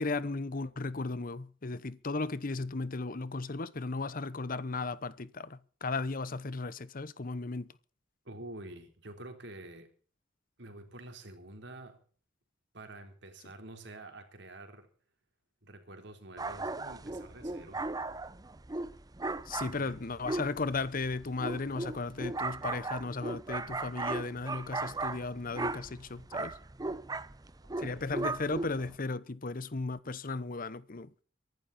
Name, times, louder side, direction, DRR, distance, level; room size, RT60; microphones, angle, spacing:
voice 1, 0.0-7.7 19.5-26.6 27.8-31.1, left 3 dB, 50° left, 0.9 m, -35 dB
voice 2, 8.3-9.9 10.6-12.0 12.7-14.9 15.6-17.9 19.7-19.9 27.6-28.2, right 2 dB, 65° right, 3.7 m, -48 dB
sound 1, 16.4-29.0, right 2 dB, 20° right, 0.7 m, -37 dB
23.5 x 12.0 x 4.2 m
head